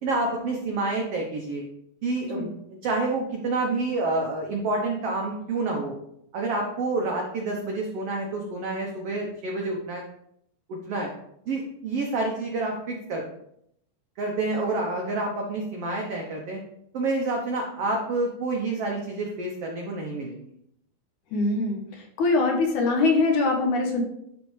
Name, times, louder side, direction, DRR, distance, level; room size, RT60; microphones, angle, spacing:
voice 1, 0.0-1.6 2.0-2.5 2.8-5.9 6.3-10.0 10.7-11.1 11.5-13.2 14.2-16.6 16.9-20.5, right 2 dB, 85° right, 0 dB, 1.3 m, -28 dB
voice 2, 21.3-21.8 22.2-24.0, left 3 dB, 70° left, 1 dB, 2.2 m, -22 dB
12.0 x 4.1 x 3.2 m, 0.74 s
omnidirectional pair, 4.1 m